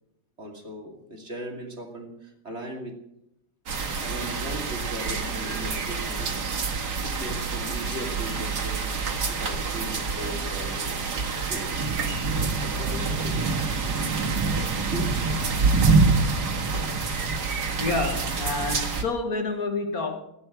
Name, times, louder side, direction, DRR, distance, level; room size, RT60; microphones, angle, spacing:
voice 1, 0.4-3.0 4.0-6.5 7.0-8.9 9.3-11.8 12.6-14.4 14.9-15.3, equal, 30° right, 2.8 m, -38 dB
sound 1, 3.7-19.0, right 4 dB, 50° right, 2.2 m, -26 dB
voice 2, 17.8-20.2, left 3 dB, 45° left, 2.0 m, -28 dB
17.0 x 9.6 x 7.3 m
omnidirectional pair, 2.3 m